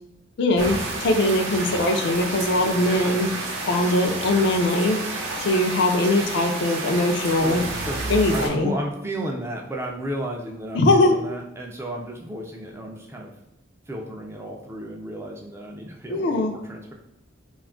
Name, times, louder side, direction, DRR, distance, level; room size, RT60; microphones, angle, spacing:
voice 1, 0.4-3.3 3.7-5.0 5.4-7.6 8.1-8.7 10.7-11.2 16.1-16.5, left 2 dB, 60° left, 4 dB, 0.4 m, -21 dB
sound 1, 0.6-8.5, right 2 dB, 80° right, 0.6 m, -30 dB
voice 2, 7.4-13.3 13.9-16.9, right 1 dB, 15° right, 0 dB, 0.3 m, -33 dB
2.5 x 2.3 x 3.6 m, 0.85 s
head